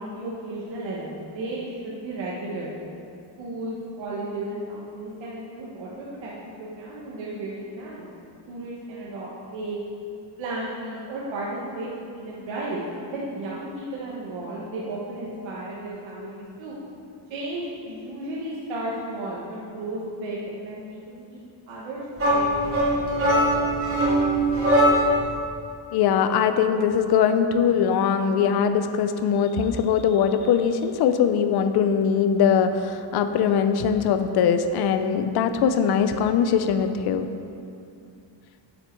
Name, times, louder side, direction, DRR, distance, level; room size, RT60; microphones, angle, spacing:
voice 1, 0.0-2.7 3.4-8.1 8.5-9.8 10.4-16.7 17.3-21.4 21.7-23.5, right 1 dB, 85° right, -6 dB, 1.5 m, -34 dB
sound 1, 22.2-25.3, equal, 30° right, 2.5 m, -21 dB
voice 2, 25.9-37.3, left 7 dB, 60° left, 9 dB, 0.6 m, -21 dB
9.0 x 8.0 x 4.5 m, 2.5 s
cardioid pair, 175°, 45 cm